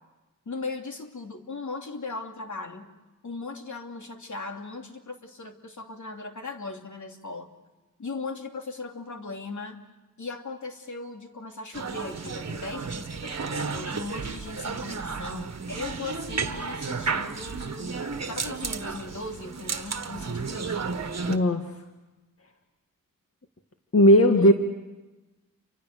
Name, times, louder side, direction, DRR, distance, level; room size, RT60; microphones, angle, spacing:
voice 1, 0.5-2.9 3.2-7.5 8.0-9.8 10.2-20.7 24.4-24.5, left 3 dB, 60° left, 3 dB, 2.8 m, -38 dB
sound 1, 11.7-21.4, right 5 dB, 50° right, 1.6 m, -33 dB
voice 2, 21.3-21.7 23.9-24.5, equal, 40° left, 4 dB, 1.8 m, -17 dB
29.5 x 25.0 x 6.7 m, 1.1 s
cardioid pair, 70°, 34 cm